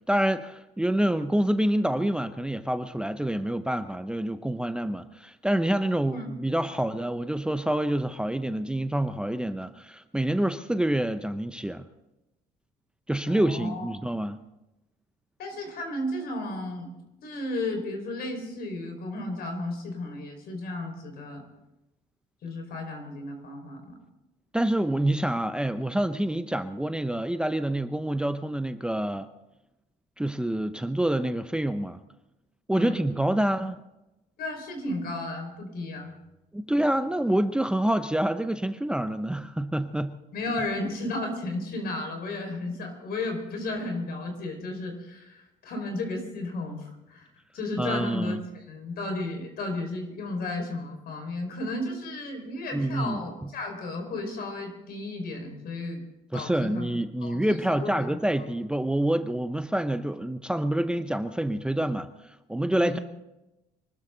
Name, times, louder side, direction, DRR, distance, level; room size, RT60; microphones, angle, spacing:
voice 1, 0.1-11.9 13.1-14.4 24.5-29.3 30.2-32.0 32.7-33.8 36.5-40.2 47.8-48.4 52.7-53.5 56.3-62.1 62.5-63.0, right 1 dB, 5° right, 10 dB, 0.7 m, -27 dB
voice 2, 13.3-14.2 15.4-16.9 17.2-21.4 22.4-24.0 32.7-32.9 34.4-36.1 40.3-47.3 47.5-56.0 56.3-56.9 57.2-58.2 62.8-63.0, left 2 dB, 65° left, 4 dB, 4.9 m, -34 dB
24.5 x 13.0 x 3.9 m, 0.94 s
cardioid pair, 110°, 17 cm